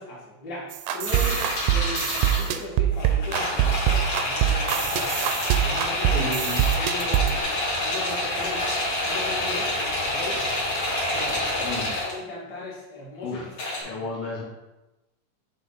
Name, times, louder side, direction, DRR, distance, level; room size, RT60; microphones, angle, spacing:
voice 1, 0.0-6.3 6.8-8.8 9.1-10.5 11.1-13.4 13.8-14.1, left 1 dB, 35° left, -6 dB, 2.1 m, -38 dB
sound 1, 0.7-7.4, right 11 dB, 80° right, 1.9 m, -24 dB
sound 2, 1.1-2.5 2.9-12.1 13.5-13.8, left 1 dB, 50° left, 2.8 m, -27 dB
voice 2, 6.1-6.6 11.3-11.9 13.2-13.5 13.8-14.4, left 2 dB, 70° left, -5 dB, 2.7 m, -33 dB
7.3 x 4.1 x 4.0 m, 1.0 s
omnidirectional pair, 3.5 m